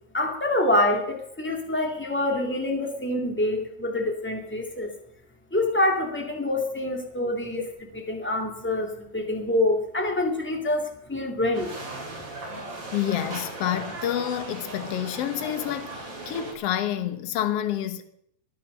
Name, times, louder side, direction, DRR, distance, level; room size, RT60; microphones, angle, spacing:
voice 1, 0.1-4.9 5.5-7.6 8.1-11.7, left 1 dB, 10° left, 0.7 m, -26 dB
sound 1, 11.5-16.5, right 2 dB, 30° right, 4.7 m, -37 dB
voice 2, 12.9-18.0, left 11 dB, 75° left, 1.4 m, -28 dB
21.0 x 9.0 x 6.7 m
omnidirectional pair, 4.3 m